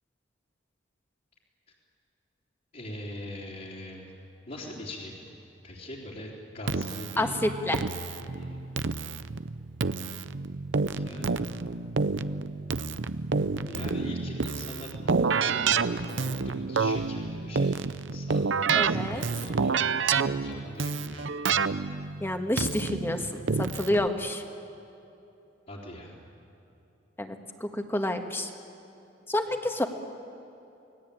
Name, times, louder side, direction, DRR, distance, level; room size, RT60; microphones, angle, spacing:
voice 1, 2.7-4.1 4.5-5.4 5.6-7.4 8.3-8.7 11.0-11.4 13.6-17.8 18.1-18.4 18.7-21.3 25.7-26.2, left 1 dB, 45° left, -7 dB, 3.7 m, -42 dB
Keyboard (musical), 6.7-24.1, right 4 dB, 70° right, 0.7 m, -29 dB
voice 2, 7.2-7.8 18.8-19.2 22.2-24.4 27.2-27.4 27.6-28.5 29.3-29.9, left 1 dB, 10° left, 5 dB, 1.7 m, -29 dB
28.5 x 20.0 x 8.7 m, 2.8 s
head